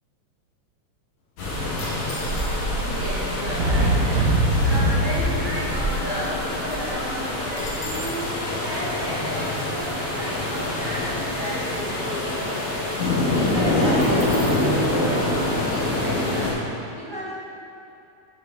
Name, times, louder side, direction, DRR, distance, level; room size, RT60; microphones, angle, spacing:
sound 1, 1.4-16.5, left 1 dB, 80° left, 3.1 m, -25 dB
sound 2, 1.8-2.9 3.7-3.8 4.0-4.3 4.7-6.2 6.5-6.6 6.9-8.3 14.0-14.7, left 2 dB, 60° left, 2.0 m, -40 dB
voice 1, 2.7-12.7 13.3-16.6 16.9-17.3, equal, 35° right, -8 dB, 0.7 m, -33 dB
sound 3, 3.5-7.3, right 1 dB, 85° right, 0.8 m, -23 dB
7.9 x 6.2 x 4.3 m, 2.6 s
omnidirectional pair, 3.3 m